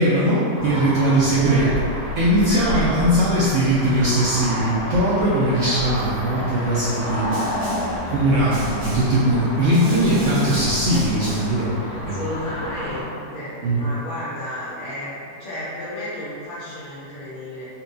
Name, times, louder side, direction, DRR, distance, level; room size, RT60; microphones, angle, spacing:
voice 1, 0.0-1.7 2.2-7.3 8.1-8.6 8.8-11.7 12.1-12.2 13.6-13.8, right 1 dB, 80° right, -9 dB, 0.6 m, -20 dB
sound 1, 0.6-13.0, left 1 dB, 75° left, 1.5 m, -30 dB
voice 2, 1.5-1.8 2.5-3.1 5.6-5.8 7.9-8.5 11.9-17.7, left 1 dB, 50° left, -10 dB, 1.1 m, -33 dB
Snare drum, 7.3-8.0 8.5-9.2 9.7-11.6, right 1 dB, 35° right, 0.7 m, -30 dB
4.2 x 2.2 x 2.6 m, 2.5 s
omnidirectional pair, 1.9 m